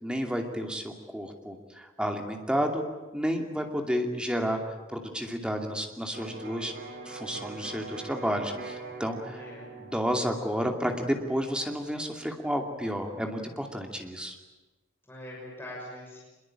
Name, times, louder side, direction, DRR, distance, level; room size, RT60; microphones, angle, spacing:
voice 1, 0.0-2.8 3.1-6.7 7.0-9.4 9.7-14.4, equal, 5° right, 3 dB, 2.6 m, -31 dB
Electric guitar, 6.1-13.9, right 3 dB, 55° right, 4.0 m, -44 dB
voice 2, 9.2-9.7 15.1-16.3, left 1 dB, 10° left, -4 dB, 6.4 m, -43 dB
24.5 x 22.5 x 8.9 m, 1.1 s
head